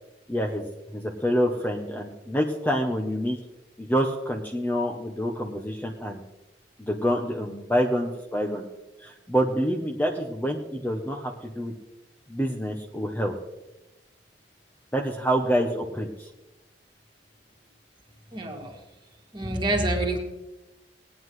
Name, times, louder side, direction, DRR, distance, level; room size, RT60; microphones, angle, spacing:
voice 1, 0.3-0.6 0.9-3.4 3.8-6.2 6.8-8.7 9.0-11.7 12.3-13.3 14.9-16.3, equal, 10° left, 1 dB, 0.8 m, -27 dB
voice 2, 18.3-18.8 19.3-20.2, right 1 dB, 25° right, 0 dB, 2.0 m, -27 dB
19.0 x 9.2 x 3.2 m, 1.0 s
head